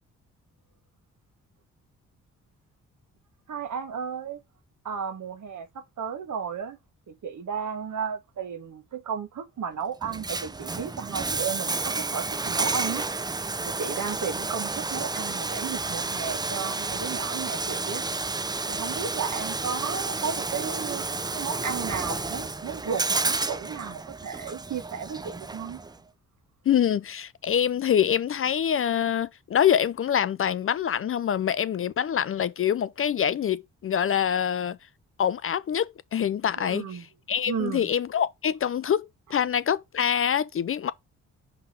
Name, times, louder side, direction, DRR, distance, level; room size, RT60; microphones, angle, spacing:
voice 1, 3.5-4.4 4.8-6.8 7.1-13.1 13.6-18.0 18.6-25.8 36.6-37.0 37.5-37.9, right 6 dB, 55° right, 1.6 m, -34 dB
Bathtub (filling or washing), 10.0-26.0, right 3 dB, 10° right, 0.5 m, -31 dB
voice 2, 26.7-34.8 35.2-40.9, left 9 dB, 35° left, 0.5 m, -25 dB
5.8 x 3.6 x 5.2 m
hypercardioid pair, 45°, 36 cm